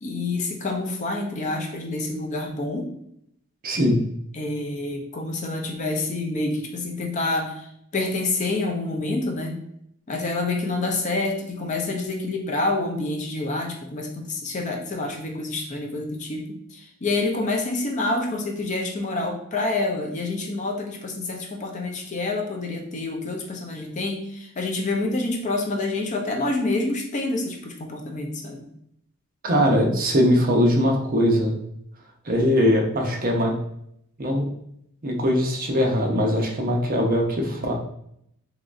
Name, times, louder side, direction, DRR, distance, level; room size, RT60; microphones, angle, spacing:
voice 1, 0.0-2.9 4.3-9.6 10.1-28.7, left 2 dB, 35° left, 2 dB, 0.5 m, -27 dB
voice 2, 3.6-4.0 29.4-31.6 32.2-33.6 34.2-34.5 35.0-37.7, equal, 40° right, 0 dB, 0.6 m, -21 dB
3.7 x 3.0 x 2.4 m, 0.73 s
head